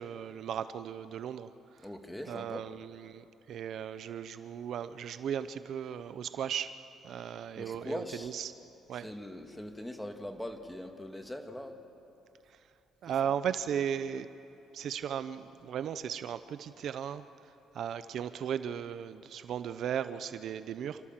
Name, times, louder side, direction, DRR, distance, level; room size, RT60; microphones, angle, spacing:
voice 1, 0.0-1.9 2.3-6.7 7.0-8.5 8.9-9.1 12.5-12.6 13.0-14.3 14.7-21.0, right 8 dB, 60° right, 13 dB, 0.6 m, -36 dB
voice 2, 1.8-2.7 7.6-8.3 8.9-11.8, left 1 dB, 5° left, 5 dB, 1.9 m, -41 dB
28.5 x 13.0 x 7.4 m, 2.8 s
cardioid pair, 100°, 0 cm